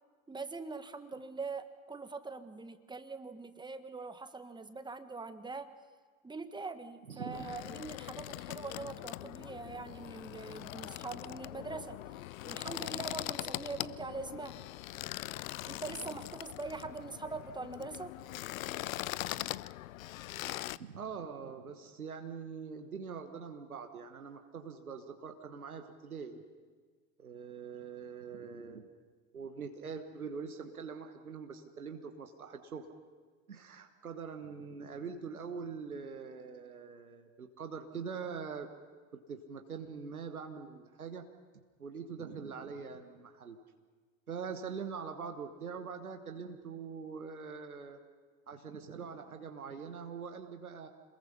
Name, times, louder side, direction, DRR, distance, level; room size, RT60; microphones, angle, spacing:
voice 1, 0.3-5.7 6.2-12.0 12.4-14.6 15.7-18.2, right 4 dB, 10° right, 10 dB, 1.4 m, -43 dB
voice 2, 7.1-7.5 20.5-26.4 27.2-28.9 29.3-32.9 33.5-38.7 39.1-41.3 41.8-43.6 44.3-48.0 48.5-50.9, right 6 dB, 85° right, 6 dB, 1.3 m, -43 dB
sound 1, 7.3-20.8, left 16 dB, 70° left, 0.6 m, -41 dB
27.0 x 20.5 x 5.7 m, 1.5 s
figure-of-eight pair, 70°, 42 cm